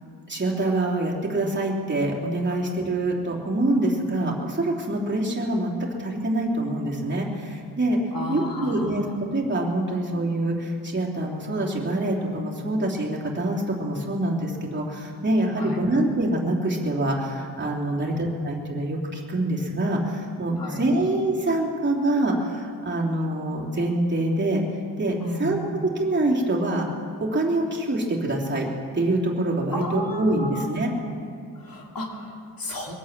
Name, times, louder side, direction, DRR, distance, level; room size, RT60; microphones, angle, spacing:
voice 1, 0.3-5.7 6.0-8.0 8.3-9.1 9.3-24.6 25.0-26.9 27.3-28.7 28.9-30.9, right 1 dB, 25° right, -4 dB, 2.9 m, -25 dB
voice 2, 8.1-9.1 15.6-15.8 17.9-18.2 20.6-20.8 25.2-25.6 29.7-30.8 31.6-32.9, left 1 dB, 60° left, 0 dB, 2.5 m, -33 dB
23.0 x 8.7 x 7.3 m, 2.4 s
wide cardioid pair, 95°, 39 cm